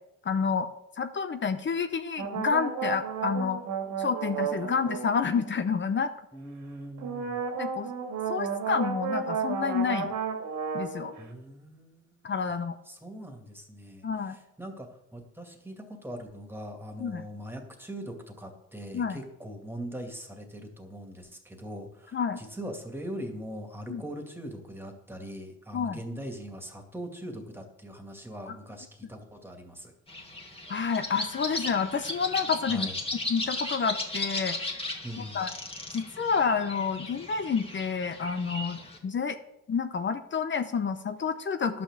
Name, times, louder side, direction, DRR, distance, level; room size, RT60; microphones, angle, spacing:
voice 1, 0.2-0.7 1.0-3.6 4.0-6.1 7.6-7.9 8.3-10.1 10.7-11.1 12.2-12.7 14.0-14.4 17.0-17.2 18.9-19.2 22.1-22.4 23.9-24.0 25.7-26.0 28.5-28.6 30.7-32.9 33.3-34.6 35.3-35.5 35.9-39.4 39.7-41.8, left 5 dB, 40° left, 10 dB, 0.8 m, -29 dB
sound 1, 2.2-5.6 7.0-11.2, right 6 dB, 75° right, 2.3 m, -32 dB
voice 2, 6.3-7.4 11.2-12.6 12.8-29.9 32.7-33.0 35.0-35.5, equal, 5° right, 4 dB, 2.3 m, -41 dB
sound 2, 30.1-39.0, left 2 dB, 20° left, 2.1 m, -36 dB
11.5 x 6.0 x 7.3 m, 0.85 s
cardioid pair, 90°, 30 cm